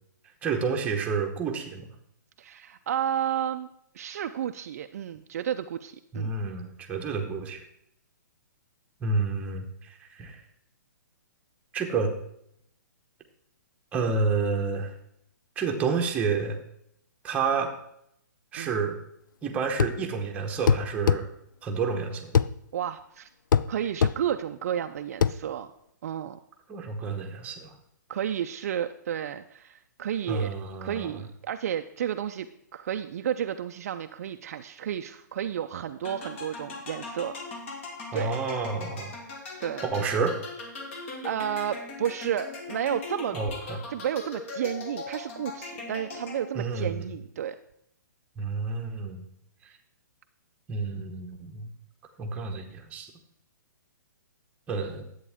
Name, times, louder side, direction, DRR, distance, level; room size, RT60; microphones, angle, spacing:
voice 1, 0.4-1.9 6.1-7.6 9.0-10.4 11.7-12.1 13.9-14.9 15.6-16.6 17.2-17.7 18.5-19.0 19.4-21.3 21.6-22.4 26.7-27.7 30.3-31.1 38.1-39.1 39.8-40.4 43.3-43.8 46.5-47.1 48.4-49.2 50.7-51.7 52.2-53.1 54.7-55.0, right 4 dB, 10° right, 2 dB, 1.0 m, -29 dB
voice 2, 2.4-3.7 3.9-6.3 18.6-18.8 22.7-23.3 23.7-25.7 26.0-26.4 28.1-30.5 30.8-32.5 32.7-37.3 38.1-38.4 39.6-39.8 40.9-43.4 43.9-47.6, right 9 dB, 50° right, 7 dB, 0.5 m, -32 dB
sound 1, 19.8-20.0 20.7-21.2 22.4-22.5 23.5-23.7 24.0-24.2 25.2-25.4, left 7 dB, 85° left, 0.4 m, -21 dB
sound 2, 36.0-46.7, left 3 dB, 40° left, 1.6 m, -40 dB
10.5 x 8.2 x 3.5 m, 0.74 s
hypercardioid pair, 160°, 10 cm